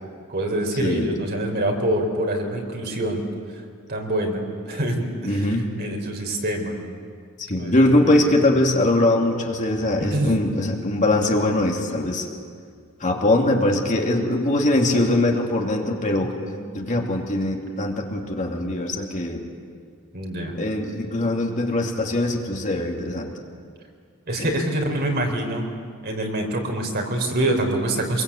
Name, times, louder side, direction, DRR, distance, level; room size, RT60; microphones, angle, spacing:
voice 1, 0.3-3.2 3.9-5.5 5.8-6.8 7.6-8.4 10.1-10.3 14.9-15.2 16.4-16.5 20.1-20.6 24.3-25.7 26.0-28.2, right 1 dB, 50° right, 3 dB, 3.8 m, -25 dB
voice 2, 0.8-1.1 5.2-5.7 7.4-12.3 13.0-16.3 16.7-19.4 20.5-23.3 24.4-24.5, left 1 dB, 35° left, 1 dB, 2.7 m, -22 dB
25.0 x 22.5 x 8.5 m, 2.1 s
head